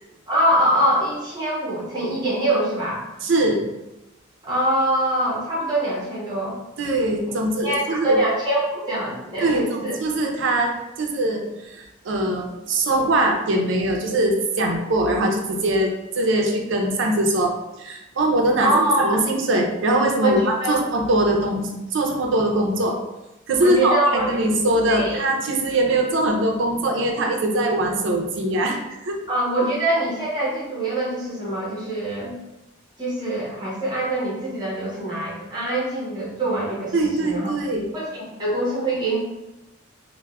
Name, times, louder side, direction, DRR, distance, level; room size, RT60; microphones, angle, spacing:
voice 1, 0.3-3.0 4.4-6.6 7.6-9.9 18.6-19.2 20.2-20.8 23.6-24.3 24.9-25.2 29.3-32.3 33.0-36.9 37.2-37.5 37.9-39.2, right 1 dB, 20° right, -7 dB, 0.7 m, -23 dB
voice 2, 3.2-3.6 6.8-8.2 9.4-23.0 23.5-29.2 36.9-37.9, right 1 dB, 65° right, 2 dB, 0.4 m, -22 dB
3.2 x 2.0 x 2.3 m, 0.95 s
head